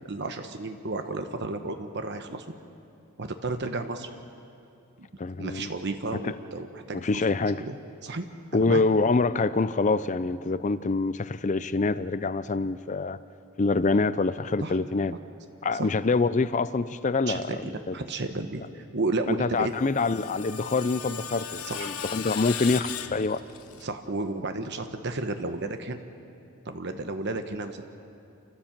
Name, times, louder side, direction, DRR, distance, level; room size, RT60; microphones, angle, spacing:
voice 1, 0.1-2.4 3.2-4.1 5.4-7.2 7.6-7.8 8.0-8.3 8.5-8.8 14.6-14.7 15.8-15.9 17.3-19.7 21.7-21.9 23.8-26.0 26.6-27.8, right 2 dB, 50° right, 7 dB, 1.0 m, -32 dB
voice 2, 5.2-5.7 6.2-6.3 6.9-7.6 8.5-13.2 13.6-15.1 15.6-18.0 19.3-23.4, left 3 dB, 35° left, 14 dB, 0.4 m, -26 dB
Screech, 19.5-23.8, left 8 dB, 75° left, 1.2 m, -37 dB
28.0 x 15.0 x 7.3 m, 2.6 s
head